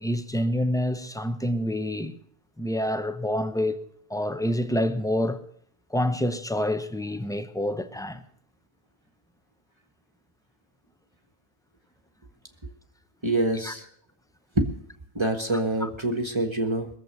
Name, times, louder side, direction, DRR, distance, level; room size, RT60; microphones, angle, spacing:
voice 1, 0.0-2.2 2.6-3.8 4.1-5.4 5.9-8.2 13.6-13.7 15.8-15.9, left 1 dB, 5° left, 0.7 m, -27 dB
voice 2, 13.2-13.9 14.6-14.7 15.1-16.9, right 1 dB, 25° right, 1.2 m, -25 dB
21.5 x 7.5 x 6.7 m
omnidirectional pair, 1.1 m